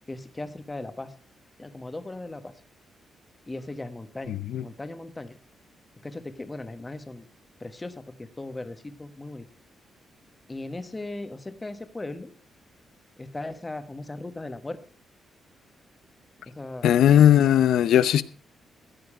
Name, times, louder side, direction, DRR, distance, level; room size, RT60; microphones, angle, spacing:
voice 1, 0.1-1.1 1.6-2.5 3.5-4.4 4.6-5.4 6.0-7.2 7.6-9.5 10.5-12.3 13.2-14.8 16.5-16.9, left 2 dB, 15° left, 1.2 m, -37 dB
voice 2, 4.3-4.6 16.8-18.2, left 10 dB, 85° left, 0.7 m, -18 dB
15.0 x 9.4 x 4.8 m
cardioid pair, 145°, 0 cm